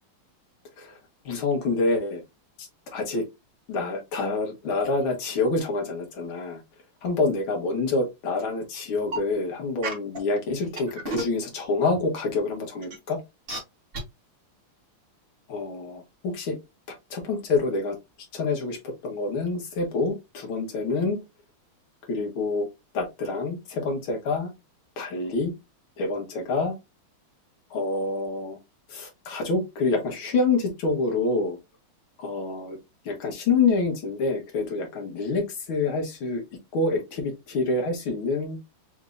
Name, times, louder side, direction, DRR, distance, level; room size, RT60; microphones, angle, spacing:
voice 1, 1.3-2.2 2.6-3.2 3.7-6.6 7.0-13.2 15.5-16.6 16.9-18.0 18.3-21.2 22.1-22.7 22.9-24.5 25.0-25.5 26.0-26.7 27.7-28.6 28.9-31.6 32.2-32.8 33.1-36.4 36.7-38.6, left 3 dB, 70° left, 2 dB, 2.2 m, -27 dB
sound 1, 9.0-9.2 9.8-10.2 10.8-11.4 11.9-12.0 12.8-13.0 13.5-13.6 13.9-14.0, right 3 dB, 35° right, 1.0 m, -30 dB
4.6 x 3.5 x 2.5 m, 0.22 s
omnidirectional pair, 2.4 m